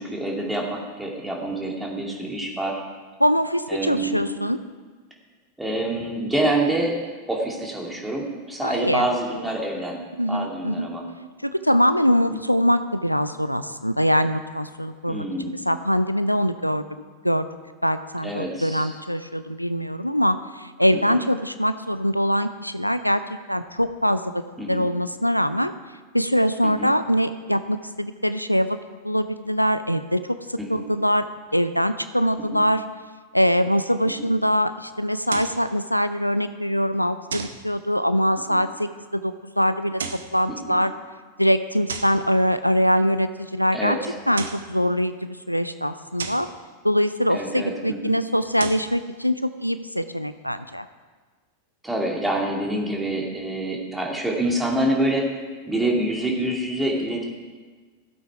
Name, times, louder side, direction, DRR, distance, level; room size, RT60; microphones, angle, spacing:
voice 1, 0.0-2.8 3.7-4.3 5.6-7.0 7.3-11.0 12.3-12.4 15.1-15.5 18.2-18.9 20.9-21.2 24.6-24.9 26.6-26.9 30.6-30.8 32.5-32.6 34.2-34.3 38.5-38.6 40.6-40.8 43.7-44.1 47.3-48.1 51.8-55.3 55.7-57.2, right 1 dB, 5° right, -1 dB, 2.4 m, -27 dB
voice 2, 3.2-4.6 8.6-9.1 10.2-10.9 11.4-15.3 15.7-16.8 17.2-17.5 17.8-23.2 23.5-24.4 24.7-25.7 26.1-28.8 29.0-31.3 31.5-32.8 33.3-40.0 40.3-40.9 41.4-44.0 44.3-46.5 46.8-50.9, equal, 90° left, 12 dB, 0.4 m, -23 dB
sound 1, 35.3-35.7 37.3-37.7 39.8-40.4 41.9-42.2 44.2-44.7 46.2-46.5 48.4-48.9, right 5 dB, 70° right, 0.8 m, -33 dB
14.5 x 8.2 x 4.8 m, 1.4 s
figure-of-eight pair, 90°, 0 cm